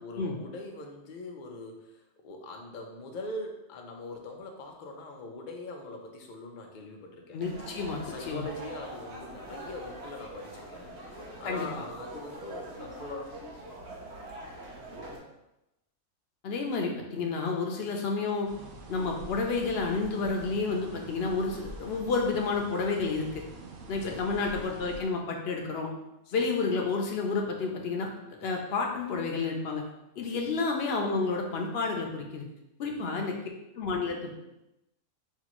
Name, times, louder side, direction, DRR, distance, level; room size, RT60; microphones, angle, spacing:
voice 1, 0.0-7.4 8.0-13.4 17.8-17.9 24.0-24.4 26.3-26.5 30.3-30.6 32.8-33.2, left 2 dB, 90° left, 2 dB, 0.4 m, -42 dB
voice 2, 7.3-8.5 11.4-11.7 16.4-18.5 18.9-23.4 23.9-25.9 26.3-28.1 28.4-29.8 30.2-32.4 32.8-33.3 33.7-34.4, left 4 dB, 60° left, 1 dB, 0.7 m, -30 dB
sound 1, 7.4-15.2, right 1 dB, 50° right, 1.0 m, -43 dB
sound 2, 18.4-25.0, right 2 dB, 70° right, 0.5 m, -46 dB
5.7 x 2.5 x 2.9 m, 0.91 s
omnidirectional pair, 1.5 m